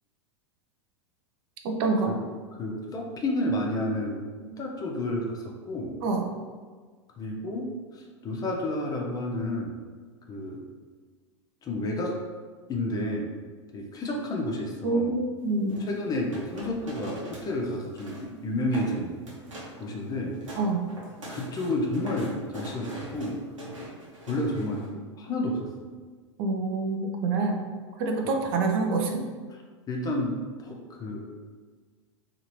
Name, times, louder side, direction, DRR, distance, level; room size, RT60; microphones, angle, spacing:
voice 1, 1.6-2.1 6.0-6.2 14.8-15.8 20.6-20.9 26.4-27.6 28.0-29.2, right 3 dB, 50° right, 2 dB, 0.5 m, -26 dB
voice 2, 2.6-5.9 7.2-9.8 10.3-10.6 11.6-12.2 12.7-13.3 13.7-15.2 15.8-19.3 19.8-20.4 21.3-23.5 24.3-25.9 29.5-29.6 29.9-31.3, left 1 dB, 25° left, 0 dB, 0.5 m, -31 dB
sound 1, 15.7-17.5 17.8-18.3 18.6-18.9 19.3-19.8 20.2-24.9, right 1 dB, 90° right, 0.9 m, -41 dB
2.8 x 2.4 x 3.0 m, 1.5 s
hypercardioid pair, 95°, 16 cm